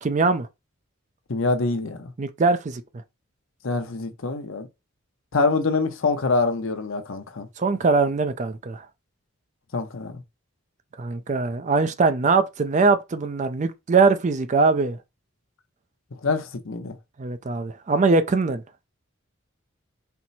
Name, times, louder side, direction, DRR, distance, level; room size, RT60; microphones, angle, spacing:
voice 1, 0.0-0.5 2.2-2.8 7.6-8.8 11.0-15.0 17.2-18.6, right 4 dB, 35° right, 0.4 m, -21 dB
voice 2, 1.3-2.1 3.6-4.7 5.3-7.5 9.7-10.2 16.2-17.0, left 3 dB, 75° left, 0.8 m, -25 dB
4.4 x 2.1 x 4.0 m
head